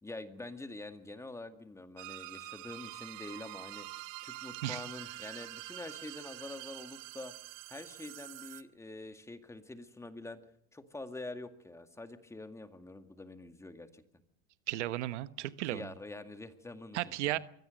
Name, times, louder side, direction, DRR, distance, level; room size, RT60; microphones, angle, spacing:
voice 1, 0.0-3.9 4.2-7.3 7.7-10.4 10.7-14.0 15.7-17.0 17.3-17.4, left 2 dB, 10° left, 8 dB, 2.0 m, -46 dB
sound 1, 2.0-8.6, right 19 dB, 60° right, 1.5 m, -46 dB
voice 2, 14.7-15.9 16.9-17.4, right 15 dB, 90° right, 14 dB, 1.2 m, -34 dB
24.0 x 17.5 x 6.6 m, 0.67 s
supercardioid pair, 120°, 34 cm